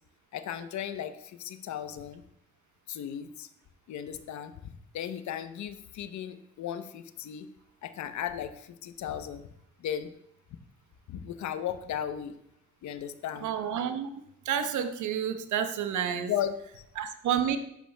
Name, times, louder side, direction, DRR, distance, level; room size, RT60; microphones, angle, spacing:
voice 1, 0.3-2.2 2.9-3.5 3.9-7.5 7.8-9.5 9.8-10.1 11.1-12.4 12.8-13.5 16.1-16.8, left 9 dB, 70° left, 11 dB, 0.8 m, -36 dB
voice 2, 13.4-14.1 14.4-16.3 17.0-17.6, right 9 dB, 75° right, 8 dB, 1.0 m, -29 dB
12.5 x 10.0 x 2.3 m, 0.78 s
supercardioid pair, 60°, 30 cm